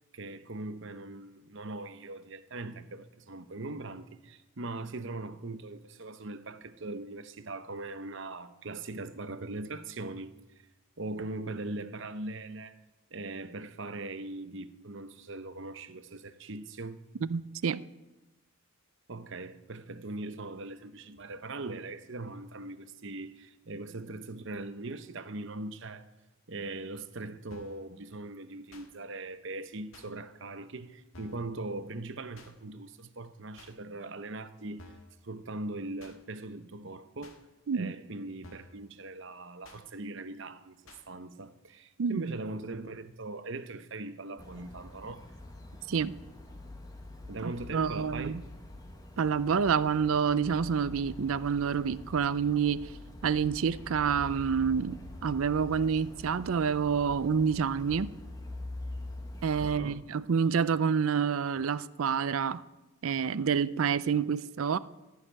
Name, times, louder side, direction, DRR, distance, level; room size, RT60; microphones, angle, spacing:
voice 1, 0.1-10.3 11.0-12.8 13.1-17.0 19.1-26.1 26.5-34.9 35.2-37.4 37.7-40.8 41.1-45.3 47.3-48.4 59.6-60.0, right 2 dB, 55° right, 0.8 m, -40 dB
voice 2, 17.2-17.8 37.7-37.9 42.0-42.3 45.9-46.1 47.4-48.4 49.2-52.9 53.2-58.1 59.4-62.6 63.0-64.8, right 6 dB, 70° right, 0.4 m, -28 dB
sound 1, 27.5-27.8 28.7-28.9 29.9-30.1 31.1-31.5 32.4-32.5 33.6-33.7 34.8-35.1 36.0-36.2 37.2-37.4 38.4-38.8 39.6-39.8 40.9-41.0, left 2 dB, 70° left, 1.7 m, -52 dB
sound 2, 44.4-59.8, left 1 dB, 15° left, 1.1 m, -45 dB
13.5 x 6.6 x 9.9 m
head